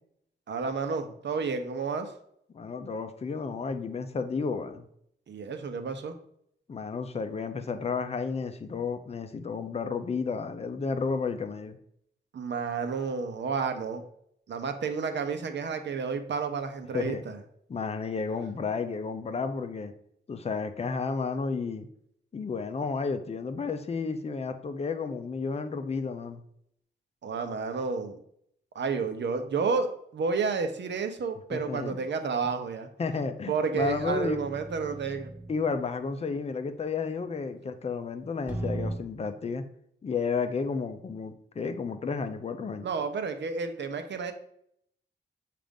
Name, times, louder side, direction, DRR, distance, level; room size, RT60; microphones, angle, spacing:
voice 1, 0.5-2.1 5.3-6.1 12.3-14.0 14.5-17.4 27.2-28.2 28.7-32.9 33.5-35.3 42.8-44.3, right 5 dB, 70° right, 7 dB, 0.7 m, -31 dB
voice 2, 2.5-4.9 6.7-11.8 16.9-17.2 17.7-19.9 20.3-21.9 22.3-26.4 31.5-32.0 33.0-34.4 35.5-39.6 40.0-42.9, left 5 dB, 35° left, 8 dB, 0.5 m, -32 dB
sound 1, 33.8-35.7 38.5-39.0, right 2 dB, 10° right, 1.0 m, -37 dB
7.4 x 2.5 x 5.1 m, 0.71 s
wide cardioid pair, 175°, 19 cm